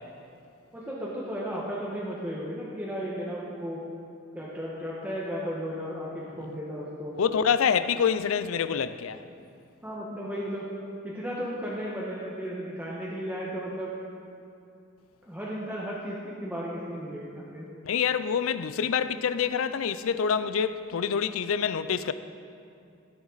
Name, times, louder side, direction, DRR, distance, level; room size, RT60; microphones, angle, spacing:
voice 1, 0.7-3.8 4.3-7.2 9.8-10.7 11.0-13.9 15.2-17.6, equal, 10° right, 1.1 m, -34 dB
voice 2, 7.2-9.2 17.9-22.1, left 7 dB, 85° left, 0.4 m, -26 dB
16.5 x 7.1 x 4.0 m
head